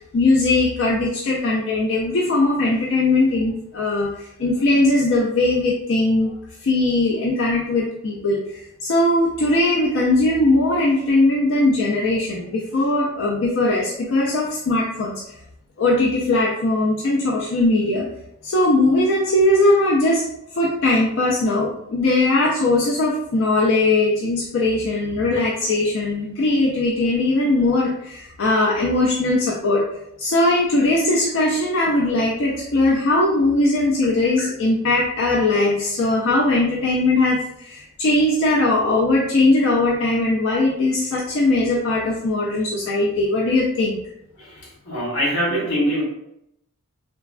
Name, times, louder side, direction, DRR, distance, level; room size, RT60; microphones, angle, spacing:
voice 1, 0.1-6.3 6.6-15.1 15.8-18.1 18.4-20.2 20.5-29.8 30.2-44.0, left 2 dB, 55° left, -2 dB, 0.4 m, -19 dB
voice 2, 44.4-46.0, equal, 80° left, -3 dB, 1.1 m, -23 dB
3.2 x 2.1 x 2.4 m, 0.77 s
head